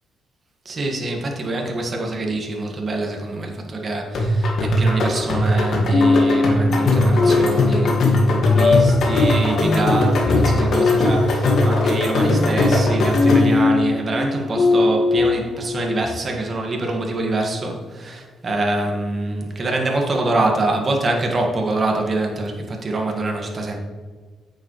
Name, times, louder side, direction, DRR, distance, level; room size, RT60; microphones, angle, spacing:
voice 1, 0.6-23.8, right 2 dB, 35° right, 1 dB, 1.7 m, -25 dB
sound 1, 4.1-13.7, left 1 dB, 60° left, 1.8 m, -19 dB
sound 2, 5.9-16.2, left 3 dB, 45° left, 0.4 m, -21 dB
8.7 x 7.0 x 3.1 m, 1.5 s
cardioid pair, 90°, 0 cm